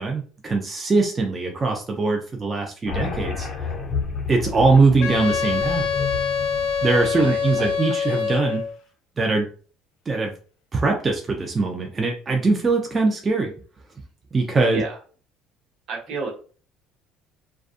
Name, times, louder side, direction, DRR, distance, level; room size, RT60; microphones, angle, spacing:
voice 1, 0.0-3.5 4.3-5.9 6.8-8.6 9.2-9.5 10.1-10.3 10.7-13.5 14.3-14.8, right 3 dB, 25° right, 2 dB, 0.5 m, -21 dB
sound 1, 2.9-8.1, left 5 dB, 45° left, 0.9 m, -31 dB
Wind instrument woodwind instrument, 5.0-8.7, left 6 dB, 75° left, 0.3 m, -25 dB
voice 2, 7.2-7.7 14.7-15.0 15.9-16.3, right 4 dB, 65° right, 0 dB, 0.8 m, -31 dB
2.5 x 2.3 x 2.4 m, 0.40 s
supercardioid pair, 100°, 0 cm